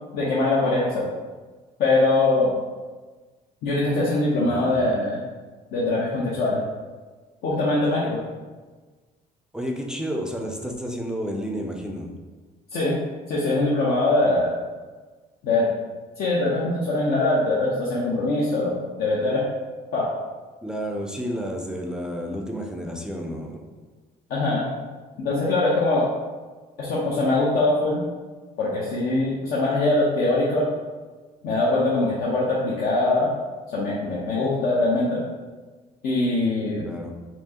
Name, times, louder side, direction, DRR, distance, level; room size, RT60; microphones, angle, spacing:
voice 1, 0.1-1.1 1.8-2.6 3.6-5.2 5.7-6.6 7.4-8.2 12.7-13.0 13.3-14.5 15.4-15.7 16.2-18.7 19.0-19.5 19.9-20.1 24.3-24.7 25.2-26.1 26.8-28.0 28.6-30.7 31.4-33.3 33.7-35.2 36.0-36.8, left 2 dB, 65° left, -6 dB, 0.8 m, -22 dB
voice 2, 4.4-4.8 9.5-12.1 20.6-23.6 36.8-37.1, equal, 5° right, 1 dB, 0.4 m, -31 dB
4.4 x 2.7 x 2.9 m, 1.3 s
cardioid pair, 110°, 17 cm